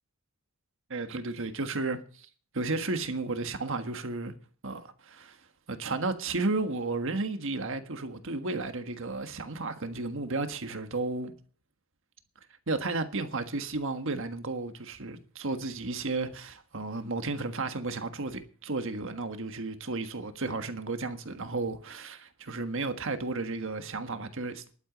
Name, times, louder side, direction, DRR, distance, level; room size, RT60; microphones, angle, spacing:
voice 1, 0.9-2.3 2.5-4.3 4.6-5.4 5.7-11.3 12.7-24.7, right 3 dB, 65° right, 1.5 m, -33 dB
11.5 x 9.0 x 7.3 m
head